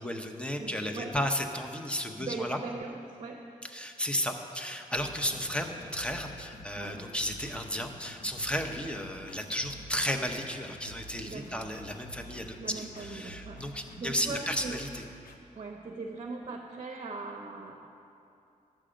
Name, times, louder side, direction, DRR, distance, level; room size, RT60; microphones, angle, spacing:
voice 1, 0.0-2.6 3.7-15.0, equal, 5° left, 4 dB, 0.8 m, -34 dB
voice 2, 0.6-1.1 2.2-3.5 6.8-7.1 11.2-11.6 12.6-13.6 14.0-14.8 15.6-17.9, right 3 dB, 45° right, 2 dB, 0.7 m, -40 dB
sound 1, 4.9-15.4, equal, 80° left, 0.8 m, -49 dB
11.0 x 7.6 x 5.1 m, 2.7 s
wide cardioid pair, 100°, 14 cm